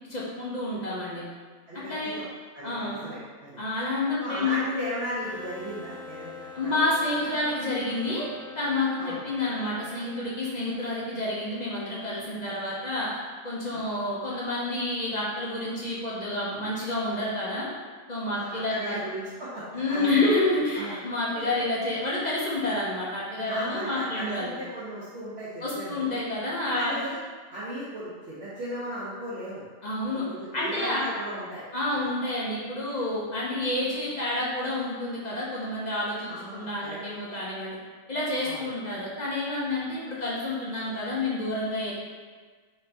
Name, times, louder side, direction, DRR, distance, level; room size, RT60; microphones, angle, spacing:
voice 1, 0.1-1.2 1.9-2.2 2.6-3.1 3.6-4.7 6.5-8.3 8.6-13.1 13.4-17.7 18.1-19.0 19.7-24.6 25.6-26.9 29.8-30.3 30.5-31.0 31.7-37.8 38.1-41.9, left 2 dB, 45° left, -6 dB, 0.6 m, -29 dB
voice 2, 1.7-2.2 2.5-3.6 4.2-6.3 6.6-6.8 9.0-9.2 13.7-13.9 18.3-20.2 20.8-21.0 21.5-21.7 23.5-26.1 26.7-27.2 27.5-29.6 30.3-31.6 31.9-32.0 36.3-37.0 38.4-38.6, equal, 55° right, -9 dB, 0.9 m, -36 dB
sound 1, 5.2-11.6, left 3 dB, 5° left, 0.3 m, -45 dB
4.2 x 2.7 x 3.3 m, 1.5 s
omnidirectional pair, 1.4 m